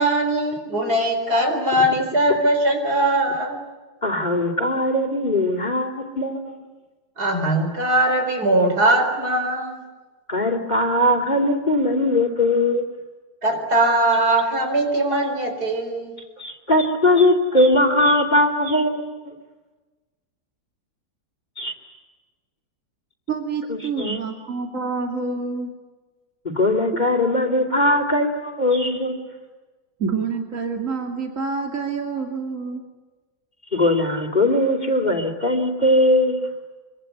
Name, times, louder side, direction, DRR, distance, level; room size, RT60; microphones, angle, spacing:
voice 1, 0.0-3.6 7.2-9.8 13.4-16.1, right 1 dB, 70° right, 4 dB, 5.1 m, -20 dB
voice 2, 4.0-6.7 10.3-12.8 16.4-19.3 21.6-21.7 23.7-24.2 26.4-29.2 33.7-36.4, left 1 dB, 25° left, 5 dB, 3.0 m, -20 dB
voice 3, 23.3-25.7 30.0-32.8, right 5 dB, 50° right, 2 dB, 2.9 m, -27 dB
25.0 x 25.0 x 9.4 m, 1.3 s
omnidirectional pair, 1.7 m